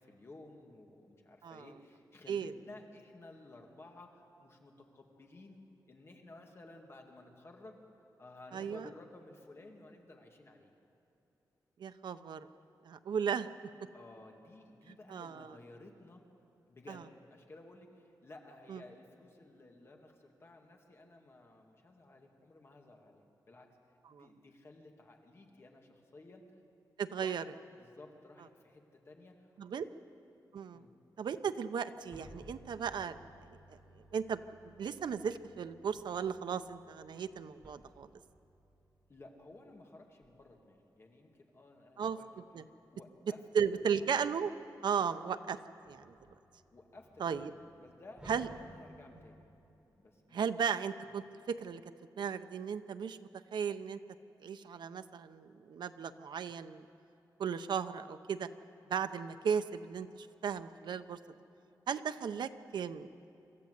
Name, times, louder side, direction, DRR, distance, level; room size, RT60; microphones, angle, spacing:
voice 1, 0.0-5.6 5.9-7.8 8.2-10.7 13.9-16.3 16.7-23.2 23.5-23.7 24.1-26.5 27.2-30.0 30.7-30.9 39.1-42.3 42.9-43.4 43.9-44.1 46.7-49.5 49.9-50.4, left 2 dB, 35° left, 2 dB, 2.1 m, -55 dB
voice 2, 8.5-8.9 11.8-12.5 12.8-13.5 15.1-15.5 16.9-17.0 18.7-18.8 24.1-24.2 27.0-27.4 29.6-29.8 30.5-30.8 31.2-33.2 34.1-34.4 34.8-38.1 42.0-42.2 42.5-42.6 43.5-44.5 44.8-45.6 45.9-46.1 47.2-47.5 48.3-48.5 50.3-51.8 52.2-53.2 53.5-54.0 54.4-56.8 57.4-58.5 58.9-61.2 61.9-63.1, right 7 dB, 90° right, 10 dB, 0.6 m, -35 dB
sound 1, 31.9-39.7 40.2-40.4 42.3-43.0 43.6-45.3 45.5-49.6, equal, 10° right, 3.3 m, -59 dB
25.5 x 13.5 x 8.1 m, 3.0 s
wide cardioid pair, 165°, 7 cm